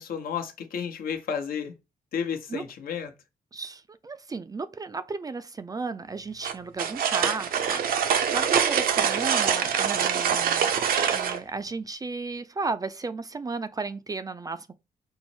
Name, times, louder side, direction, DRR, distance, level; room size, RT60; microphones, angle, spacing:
voice 1, 0.0-1.7 2.1-3.1, left 7 dB, 70° left, 0.9 m, -32 dB
voice 2, 3.5-10.7 11.1-14.7, right 3 dB, 25° right, 0.4 m, -34 dB
sound 1, 6.4-11.4, right 8 dB, 70° right, 0.6 m, -24 dB
5.5 x 2.0 x 4.3 m
cardioid pair, 115°, 15 cm